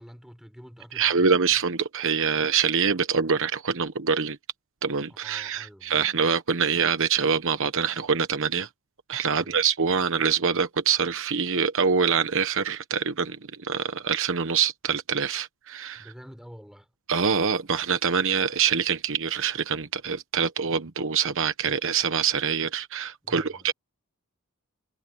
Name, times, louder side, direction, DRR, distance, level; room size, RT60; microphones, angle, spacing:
voice 1, 0.0-1.4 5.1-6.0 9.3-9.6 16.0-16.9 23.2-23.7, equal, ahead, 5.0 m, -47 dB
voice 2, 0.9-4.4 4.8-8.7 9.1-16.1 17.1-23.7, right 6 dB, 60° right, 1.1 m, -25 dB
head